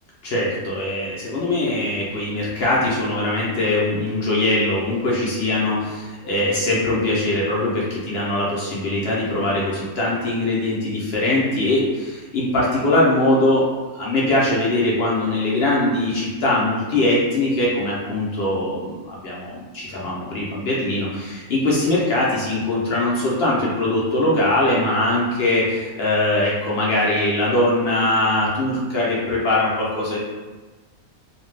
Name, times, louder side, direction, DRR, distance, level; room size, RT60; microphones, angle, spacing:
voice 1, 0.2-13.6 14.0-30.2, left 1 dB, 60° left, -5 dB, 0.7 m, -21 dB
2.5 x 2.3 x 3.1 m, 1.2 s
omnidirectional pair, 1.5 m